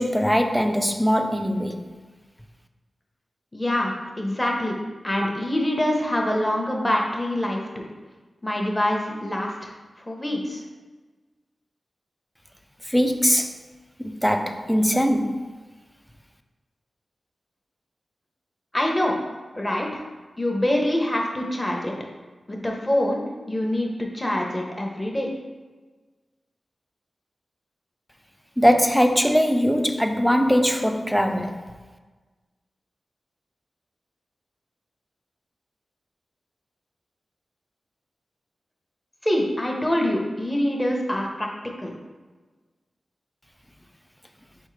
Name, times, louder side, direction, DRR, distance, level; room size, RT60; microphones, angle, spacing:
voice 1, 0.0-1.9 12.9-13.5 14.0-15.5 28.6-31.6, equal, ahead, 0.4 m, -21 dB
voice 2, 3.5-4.7 5.0-7.8 8.4-9.7 10.1-10.6 18.7-19.1 19.5-20.0 20.4-21.9 22.5-25.3 39.2-41.5 41.8-41.9, left 1 dB, 25° left, 0.9 m, -25 dB
4.3 x 3.5 x 3.2 m
cardioid pair, 45°, 0 cm